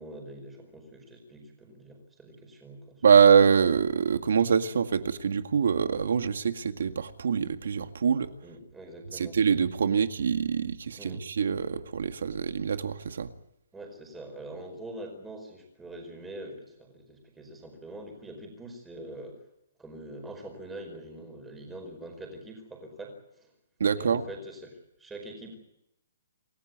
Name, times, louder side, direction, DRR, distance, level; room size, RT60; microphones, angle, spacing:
voice 1, 0.0-3.0 8.4-9.4 11.0-11.2 13.7-19.4 19.8-23.5 24.0-25.6, right 1 dB, 5° right, 3 dB, 5.0 m, -44 dB
voice 2, 3.0-8.3 9.1-13.3 23.8-24.2, right 6 dB, 65° right, 8 dB, 2.0 m, -24 dB
28.0 x 15.5 x 9.6 m, 0.83 s
hypercardioid pair, 175°, 0 cm